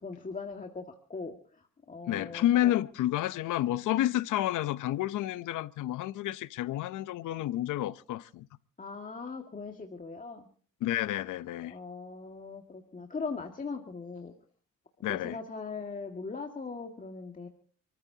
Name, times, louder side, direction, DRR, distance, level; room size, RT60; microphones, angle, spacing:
voice 1, 0.0-2.7 8.8-10.5 11.7-14.3 15.1-17.5, left 4 dB, 25° left, 1.9 m, -40 dB
voice 2, 2.1-8.5 10.8-11.7 15.0-15.4, left 13 dB, 85° left, 0.8 m, -30 dB
29.0 x 14.5 x 2.8 m
cardioid pair, 90°, 30 cm